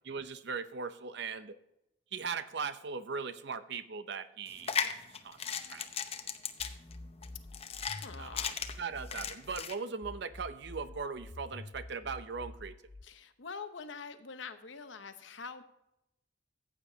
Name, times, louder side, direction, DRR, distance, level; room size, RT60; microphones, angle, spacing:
voice 1, 0.0-1.6 2.1-4.9 5.2-5.5 5.7-5.9 8.2-8.4 8.8-12.7, right 5 dB, 65° right, 12 dB, 0.7 m, -39 dB
sound 1, 4.5-9.7, left 7 dB, 35° left, 0.7 m, -37 dB
sound 2, 6.6-9.6 10.0-13.0, left 2 dB, 15° left, 0.3 m, -48 dB
voice 2, 8.0-8.8 13.0-15.6, left 5 dB, 90° left, 9 dB, 0.9 m, -45 dB
14.5 x 8.3 x 2.8 m, 0.87 s
head